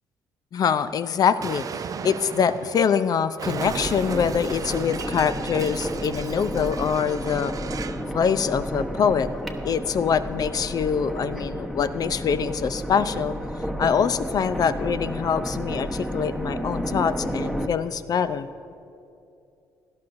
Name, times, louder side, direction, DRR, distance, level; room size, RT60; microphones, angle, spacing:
voice 1, 0.5-7.5 8.0-9.3 9.6-13.4 13.8-18.5, left 7 dB, 50° left, 14 dB, 0.5 m, -24 dB
Explosion, 1.4-8.1, right 7 dB, 45° right, 0.4 m, -36 dB
sound 1, 3.6-17.7, equal, 5° left, 1.1 m, -32 dB
17.5 x 11.5 x 2.6 m, 2.7 s
hypercardioid pair, 50°, 9 cm